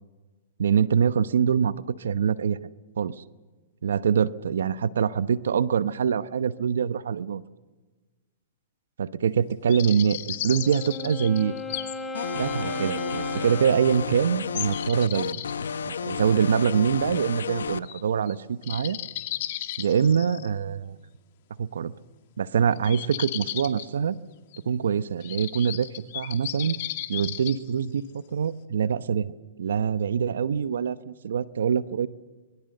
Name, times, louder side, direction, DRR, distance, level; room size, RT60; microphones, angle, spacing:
voice 1, 0.6-1.7 2.0-2.6 3.0-3.2 3.8-7.4 9.0-11.5 12.3-15.4 15.9-19.0 19.8-21.0 21.6-21.9 22.4-24.2 24.6-25.9 26.1-26.8 27.1-32.1, right 7 dB, 80° right, 16 dB, 0.9 m, -24 dB
sound 1, 9.7-12.0 12.4-12.5 13.3-13.4 14.5-15.5 17.8-18.0 18.3-18.4 18.6-20.5 22.8-23.8 24.5-24.6 25.2-27.6, left 14 dB, 55° left, 2.2 m, -35 dB
Wind instrument woodwind instrument, 10.4-14.7, left 1 dB, 10° left, 2.1 m, -36 dB
sound 2, 12.1-17.8, left 6 dB, 85° left, 0.9 m, -32 dB
25.5 x 22.0 x 6.7 m, 1.3 s
hypercardioid pair, 130°, 0 cm